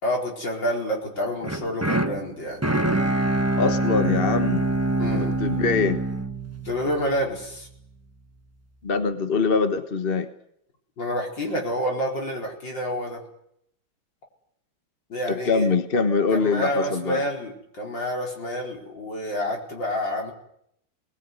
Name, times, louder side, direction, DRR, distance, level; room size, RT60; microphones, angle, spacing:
voice 1, 0.0-2.6 5.0-5.3 6.7-7.7 11.0-13.2 15.1-15.7 16.3-20.3, equal, 60° left, 0 dB, 5.3 m, -28 dB
sound 1, 1.4-7.5, right 1 dB, 10° right, 1.0 m, -25 dB
voice 2, 3.6-4.7 5.1-6.0 8.8-10.3 15.3-17.3, left 4 dB, 30° left, 9 dB, 1.3 m, -23 dB
23.5 x 20.5 x 9.5 m, 0.74 s
omnidirectional pair, 2.2 m